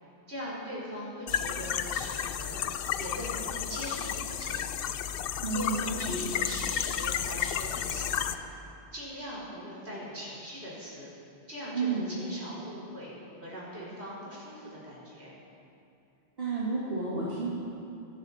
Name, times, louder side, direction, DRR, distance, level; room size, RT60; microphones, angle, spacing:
voice 1, 0.3-2.6 3.0-4.9 5.5-8.5 8.9-11.0 11.5-13.1 13.4-15.3, equal, 80° right, -7 dB, 5.1 m, -41 dB
sound 1, 1.3-8.3, left 9 dB, 65° left, 0.8 m, -32 dB
voice 2, 5.4-6.2 11.7-12.1 16.4-17.5, right 3 dB, 65° right, -7 dB, 2.3 m, -31 dB
25.0 x 10.5 x 4.3 m, 2.6 s
omnidirectional pair, 1.1 m